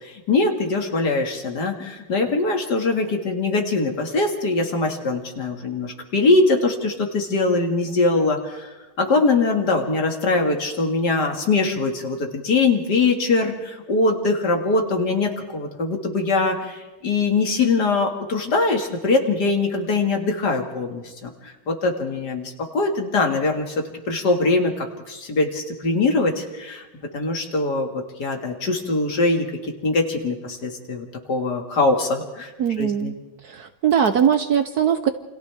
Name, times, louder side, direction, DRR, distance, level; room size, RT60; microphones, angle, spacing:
voice 1, 0.0-8.7 9.0-21.3 21.7-23.8 24.1-26.9 27.1-32.5 32.8-33.1, left 3 dB, 55° left, 3 dB, 2.5 m, -22 dB
voice 2, 32.6-33.1 33.4-35.1, right 8 dB, 60° right, 9 dB, 1.2 m, -20 dB
29.0 x 26.0 x 3.5 m, 1.1 s
omnidirectional pair, 2.2 m